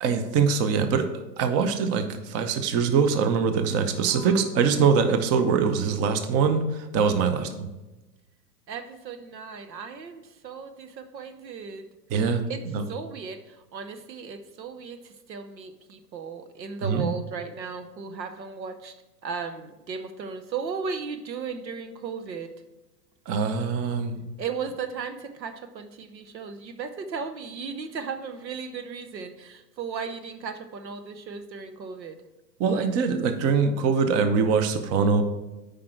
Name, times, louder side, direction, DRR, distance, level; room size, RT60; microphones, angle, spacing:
voice 1, 0.0-1.1 1.4-7.7 12.1-12.4 12.7-12.8 16.8-17.1 23.3-24.2 32.6-35.2, right 5 dB, 30° right, 9 dB, 0.8 m, -23 dB
voice 2, 4.0-4.6 8.7-11.8 12.5-12.6 12.9-19.0 19.2-22.5 24.4-32.2, right 5 dB, 90° right, 9 dB, 0.9 m, -36 dB
8.6 x 5.1 x 4.5 m, 1.1 s
hypercardioid pair, 110°, 49 cm